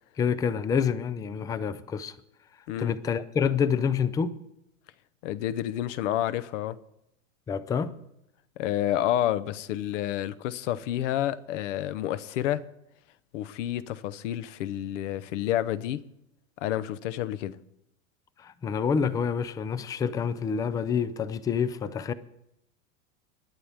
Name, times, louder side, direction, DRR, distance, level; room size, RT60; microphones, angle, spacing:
voice 1, 0.2-2.1 2.8-4.4 7.5-7.9 18.4-22.1, left 6 dB, 10° left, 0.3 m, -27 dB
voice 2, 5.2-6.8 8.6-12.6 13.3-16.0 16.6-17.5, left 12 dB, 65° left, 0.9 m, -29 dB
20.5 x 9.7 x 3.5 m
hypercardioid pair, 115°, 39 cm